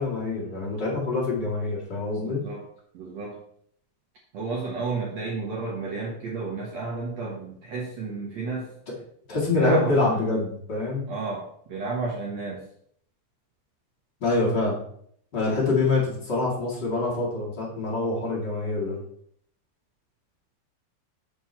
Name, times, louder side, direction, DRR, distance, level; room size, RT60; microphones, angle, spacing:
voice 1, 0.0-2.4 9.3-11.0 14.2-14.8 15.3-19.0, left 3 dB, 40° left, -4 dB, 1.6 m, -25 dB
voice 2, 2.2-2.7 2.9-3.4 4.3-8.7 9.5-10.2 11.1-12.6, right 3 dB, 75° right, -3 dB, 1.6 m, -32 dB
6.8 x 6.3 x 4.4 m, 0.64 s
omnidirectional pair, 5.0 m